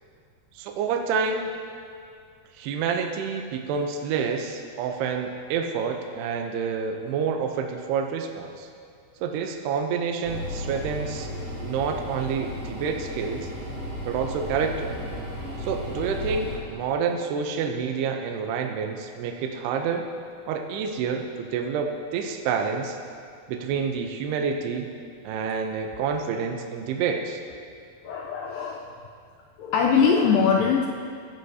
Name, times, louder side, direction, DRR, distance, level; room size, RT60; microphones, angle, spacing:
voice 1, 0.6-1.5 2.5-8.7 9.2-11.3 11.6-13.5 14.1-15.0 15.6-20.1 20.5-23.0 23.5-24.9 25.2-27.4, right 6 dB, 80° right, 3 dB, 2.8 m, -28 dB
sound 1, 10.2-16.6, left 1 dB, 35° right, 4.1 m, -34 dB
voice 2, 28.0-28.9 29.6-30.9, left 6 dB, 90° left, 1 dB, 2.0 m, -21 dB
23.0 x 13.0 x 2.8 m, 2.3 s
omnidirectional pair, 4.8 m